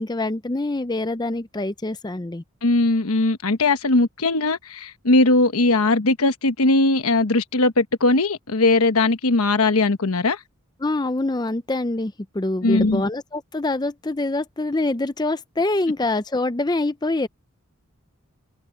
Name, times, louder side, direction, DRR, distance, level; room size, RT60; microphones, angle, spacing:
voice 1, 0.0-2.4 10.8-17.3, left 2 dB, 20° left, 0.5 m, -25 dB
voice 2, 2.6-10.4 12.6-13.0, left 2 dB, 85° left, 1.2 m, -19 dB
head